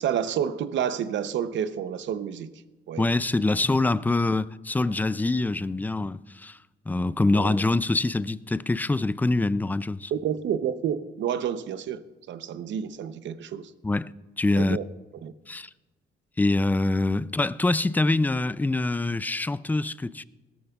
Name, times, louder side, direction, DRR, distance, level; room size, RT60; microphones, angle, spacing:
voice 1, 0.0-2.5 2.9-3.0 3.7-3.9 7.3-7.6 10.1-13.7 14.6-14.8 15.2-15.3, right 8 dB, 70° right, 0.7 m, -29 dB
voice 2, 3.0-6.6 6.9-10.1 13.8-14.8 15.5-15.7 16.4-20.2, left 2 dB, 10° left, 0.3 m, -25 dB
18.0 x 13.5 x 2.3 m
cardioid pair, 90°, 20 cm